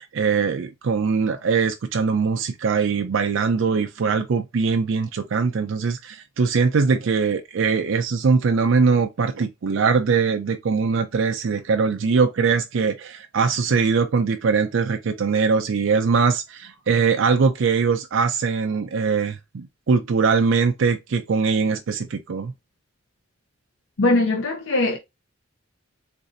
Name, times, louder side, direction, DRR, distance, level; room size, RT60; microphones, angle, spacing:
voice 1, 0.0-22.5, right 5 dB, 70° right, 0.5 m, -21 dB
voice 2, 24.0-25.0, left 2 dB, 75° left, 0.6 m, -20 dB
3.9 x 2.6 x 2.5 m
head